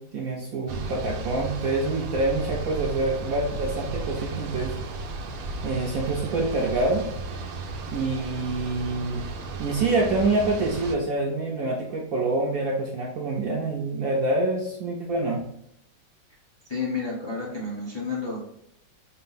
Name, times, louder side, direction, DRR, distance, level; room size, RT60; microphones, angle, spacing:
voice 1, 0.0-4.7 5.6-7.1 7.9-9.2 9.6-15.4, right 2 dB, 70° right, -1 dB, 0.8 m, -26 dB
sound 1, 0.7-11.0, right 3 dB, 85° right, 1.4 m, -34 dB
voice 2, 16.6-18.4, left 4 dB, 40° left, -4 dB, 0.4 m, -30 dB
5.4 x 2.0 x 3.9 m, 0.73 s
omnidirectional pair, 2.1 m